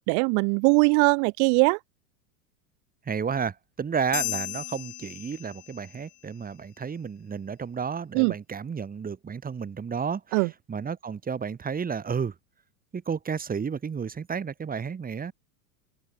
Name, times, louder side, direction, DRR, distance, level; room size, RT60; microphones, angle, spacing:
voice 1, 0.0-1.8 8.1-8.3 10.3-10.5, right 40 dB or more, 40° right, 0.4 m, -21 dB
voice 2, 3.0-12.3 12.9-15.3, right 6 dB, 20° right, 3.0 m, -32 dB
sound 1, 4.1-6.0, left 20 dB, 40° left, 1.4 m, -35 dB
open air
hypercardioid pair, 105°, 44 cm